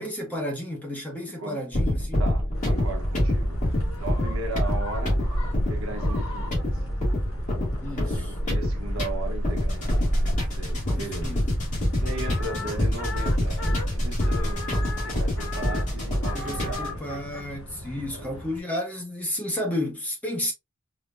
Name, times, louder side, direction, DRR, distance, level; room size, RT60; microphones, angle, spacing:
voice 1, 0.0-2.2 7.8-8.3 10.9-11.4 16.3-20.5, left 1 dB, 5° left, 1.0 m, -32 dB
sound 1, 1.7-17.0, equal, 35° left, 2.0 m, -26 dB
voice 2, 2.2-5.2 5.5-6.6 8.0-10.2 10.5-11.3 12.0-17.0 18.1-18.3, right 2 dB, 70° right, 1.2 m, -37 dB
sound 2, 2.5-18.6, equal, 65° left, 1.9 m, -34 dB
5.0 x 2.4 x 2.5 m
head